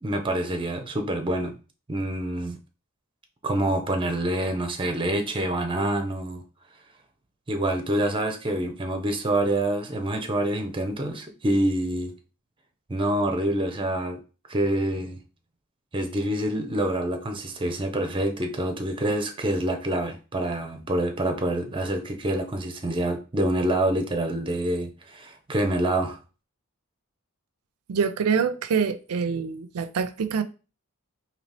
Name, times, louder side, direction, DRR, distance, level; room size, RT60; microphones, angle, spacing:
voice 1, 0.0-1.5 1.9-2.6 3.4-6.4 7.5-12.1 12.9-14.2 14.5-15.2 15.9-26.2, right 1 dB, 25° right, 0.6 m, -26 dB
voice 2, 27.9-30.4, right 6 dB, 85° right, 0.4 m, -25 dB
4.0 x 2.8 x 3.3 m
head